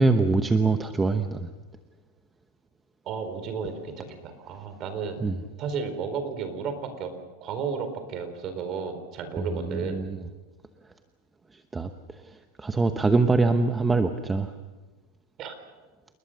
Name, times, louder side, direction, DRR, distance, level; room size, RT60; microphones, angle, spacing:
voice 1, 0.0-1.5 5.2-5.4 9.4-10.2 11.7-11.9 12.2-14.5, right 3 dB, 10° right, 7 dB, 1.0 m, -24 dB
voice 2, 3.1-5.2 5.6-7.1 7.4-10.0 15.4-15.5, right 6 dB, 35° right, 8 dB, 4.3 m, -33 dB
28.5 x 20.5 x 6.6 m, 1.3 s
supercardioid pair, 155°, 0 cm